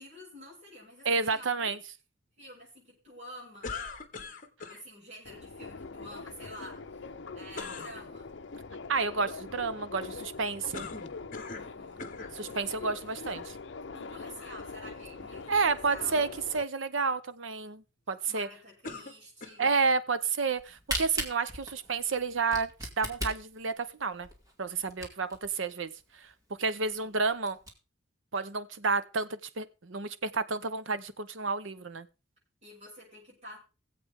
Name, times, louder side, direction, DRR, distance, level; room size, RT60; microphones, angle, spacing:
voice 1, 0.0-1.7 2.4-3.8 4.7-7.0 7.3-8.4 11.6-12.1 13.9-16.2 18.3-19.6 27.0-27.1 32.6-33.6, equal, 35° right, 6.6 m, -49 dB
voice 2, 1.0-1.8 8.9-10.9 12.3-13.5 15.5-16.3 16.5-18.5 19.6-24.3 24.6-26.3 26.6-27.6 28.3-32.1, right 4 dB, 75° right, 0.9 m, -30 dB
sound 1, 3.6-4.8 7.5-8.0 10.7-11.7 12.0-12.4 13.2-13.3 18.8-19.8, left 4 dB, 40° left, 1.3 m, -41 dB
Subway metro underground, 5.3-16.6, left 4 dB, 60° left, 0.7 m, -43 dB
Camera, 20.5-25.5 26.0-26.1 26.3-26.4 26.9-27.0 27.3-27.7, equal, 15° right, 2.3 m, -37 dB
20.5 x 7.9 x 3.6 m
head